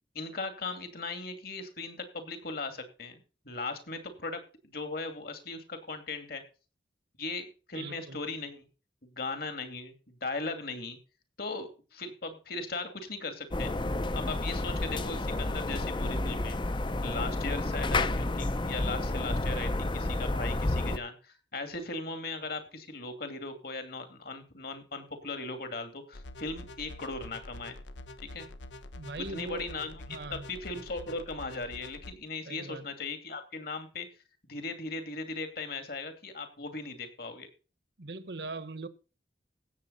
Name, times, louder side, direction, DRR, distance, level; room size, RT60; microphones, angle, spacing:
voice 1, 0.1-6.4 7.2-8.6 9.2-11.0 11.4-13.7 14.1-16.6 17.0-27.8 28.2-28.5 29.3-30.0 30.3-34.1 34.5-37.5, left 3 dB, 55° left, 2.5 m, -38 dB
voice 2, 7.7-8.2 29.0-29.7 30.1-30.5 32.5-32.9 38.0-38.9, right 3 dB, 65° right, 1.1 m, -40 dB
sound 1, 13.5-21.0, left 2 dB, 25° left, 0.6 m, -30 dB
sound 2, 26.1-32.1, left 2 dB, 85° left, 1.0 m, -46 dB
16.5 x 7.5 x 4.1 m
head